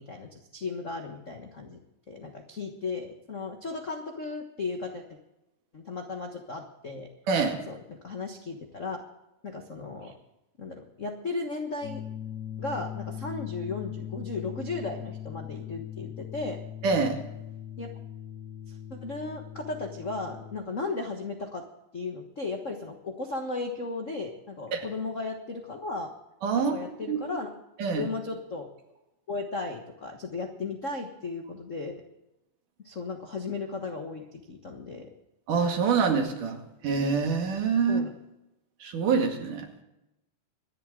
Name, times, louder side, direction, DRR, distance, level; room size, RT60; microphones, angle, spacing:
voice 1, 0.0-1.8 2.1-5.0 5.7-7.1 7.7-9.0 9.4-10.1 10.6-12.0 12.6-16.6 17.8-17.9 18.7-21.6 21.9-26.1 26.5-27.5 28.0-28.7 29.3-32.0 32.8-35.1 37.9-38.1, left 3 dB, 65° left, 3 dB, 0.7 m, -35 dB
voice 2, 7.3-7.6 16.8-17.2 24.7-24.9 26.4-26.7 27.1-27.2 27.8-28.1 35.5-36.6 36.8-38.0 38.8-39.7, right 5 dB, 75° right, 3 dB, 3.7 m, -25 dB
sound 1, 11.8-20.6, left 10 dB, 45° left, 1.4 m, -40 dB
25.0 x 11.0 x 3.7 m, 0.91 s
omnidirectional pair, 3.7 m